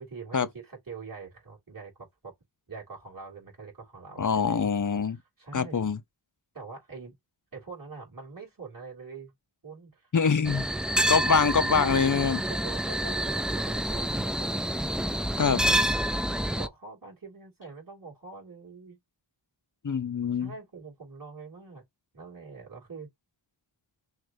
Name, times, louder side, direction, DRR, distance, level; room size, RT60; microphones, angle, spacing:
voice 1, 0.0-2.3 2.7-4.7 5.1-5.9 6.5-7.1 7.5-9.3 9.6-10.1 11.8-14.5 16.0-19.0 20.4-21.8 22.1-23.1, right 4 dB, 45° right, 3.0 m, -44 dB
voice 2, 4.2-5.2 5.5-6.0 10.1-10.6 11.1-12.4 15.4-15.6 19.8-20.5, left 6 dB, 45° left, 0.6 m, -24 dB
sound 1, 10.4-16.7, right 1 dB, ahead, 0.3 m, -28 dB
6.2 x 2.4 x 2.7 m
wide cardioid pair, 55°, 46 cm